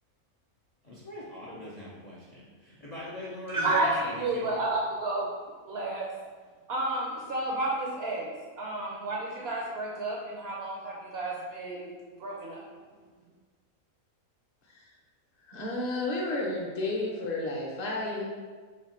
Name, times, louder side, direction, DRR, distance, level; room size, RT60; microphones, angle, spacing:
voice 1, 0.8-4.6, left 1 dB, 80° left, -6 dB, 0.3 m, -42 dB
voice 2, 3.5-5.3 5.7-6.1 6.7-8.3 8.6-11.9 12.2-12.6, right 2 dB, 65° right, -2 dB, 0.6 m, -31 dB
voice 3, 15.4-18.3, left 2 dB, 40° left, -2 dB, 0.6 m, -31 dB
3.1 x 2.8 x 4.1 m, 1.5 s
omnidirectional pair, 1.5 m